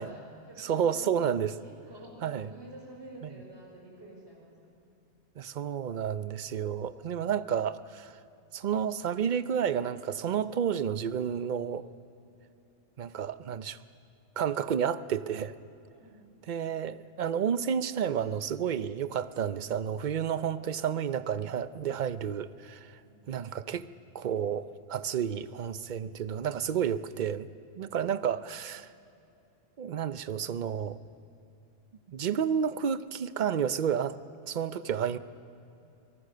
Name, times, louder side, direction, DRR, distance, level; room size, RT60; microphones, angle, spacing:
voice 1, 0.0-1.0 1.6-4.6 15.9-16.4 23.0-23.3, right 1 dB, 65° right, -2 dB, 5.8 m, -50 dB
voice 2, 0.6-1.6 2.2-2.5 5.4-8.2 8.5-11.9 13.0-13.8 14.4-15.5 16.5-23.0 23.3-23.9 24.1-27.5 27.8-28.9 29.8-31.0 32.1-34.2 34.5-35.2, right 8 dB, 50° right, 14 dB, 0.6 m, -31 dB
24.5 x 18.0 x 6.7 m, 2.8 s
omnidirectional pair, 1.2 m